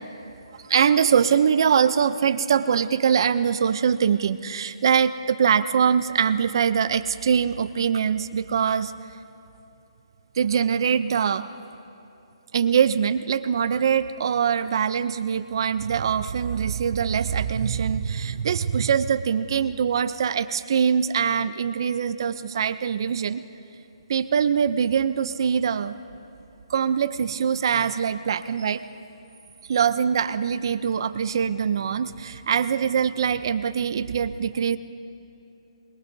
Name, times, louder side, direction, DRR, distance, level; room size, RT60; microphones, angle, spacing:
voice 1, 0.6-8.9 10.3-11.5 12.5-23.4 24.1-26.0 26.7-28.8 29.7-34.8, right 7 dB, 50° right, 12 dB, 0.5 m, -23 dB
25.0 x 21.0 x 2.7 m, 2.8 s
hypercardioid pair, 160°, 3 cm